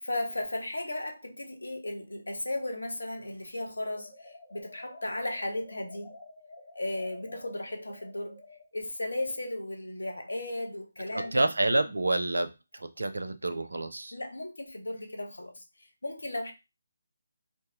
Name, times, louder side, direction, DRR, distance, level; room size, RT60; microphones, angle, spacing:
voice 1, 0.0-6.1 6.7-8.4 8.7-11.5 14.1-16.5, left 1 dB, 65° left, 0.7 m, -35 dB
sound 1, 3.8-8.7, left 2 dB, 15° left, 0.8 m, -51 dB
voice 2, 11.1-14.1, right 2 dB, 65° right, 0.4 m, -28 dB
2.6 x 2.0 x 3.5 m
figure-of-eight pair, 150°, 0 cm